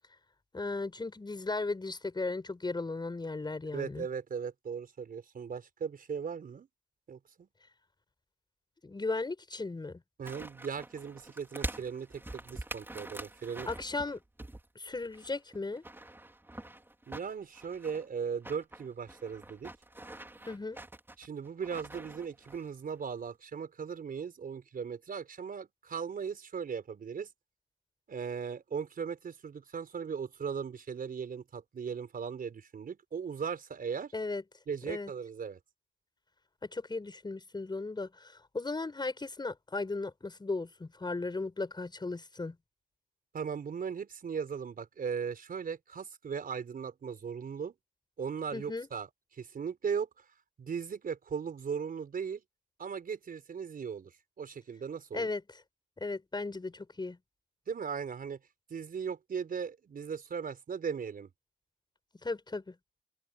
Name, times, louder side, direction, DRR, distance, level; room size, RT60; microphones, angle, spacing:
voice 1, 0.5-4.1 8.8-10.0 13.7-14.2 14.7-15.8 20.5-20.8 34.1-34.4 34.9-35.1 36.6-42.6 48.5-48.9 55.1-55.4 56.0-57.2 62.2-62.7, left 3 dB, 20° left, 7.8 m, -36 dB
voice 2, 3.7-6.7 7.1-7.5 10.2-13.7 17.1-19.7 21.2-27.3 28.1-34.1 34.7-35.6 43.3-47.7 48.2-50.2 50.6-52.4 52.8-55.3 57.7-58.4 58.7-61.3, right 6 dB, 45° right, 4.5 m, -38 dB
sound 1, 10.2-14.7 14.9-18.1 18.4-22.7 22.9-23.0, right 1 dB, 10° right, 4.8 m, -45 dB
open air
cardioid pair, 90°, 20 cm